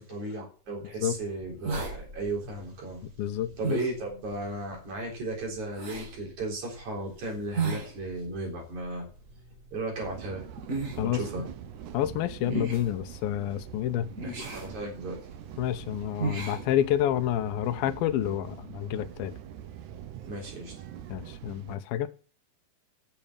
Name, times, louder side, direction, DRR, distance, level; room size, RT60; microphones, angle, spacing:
voice 1, 0.0-3.0 3.6-9.1 9.7-10.4 11.0-11.4 14.2-15.2 20.3-20.7, right 2 dB, 55° right, 5.2 m, -35 dB
sound 1, 0.8-17.4, right 3 dB, 35° right, 1.4 m, -38 dB
voice 2, 3.2-3.8 11.0-11.2 11.9-14.1 15.6-19.3 21.1-22.1, left 12 dB, 85° left, 2.6 m, -29 dB
sound 2, 10.0-21.8, right 10 dB, 70° right, 2.1 m, -44 dB
9.0 x 6.7 x 8.7 m
omnidirectional pair, 4.2 m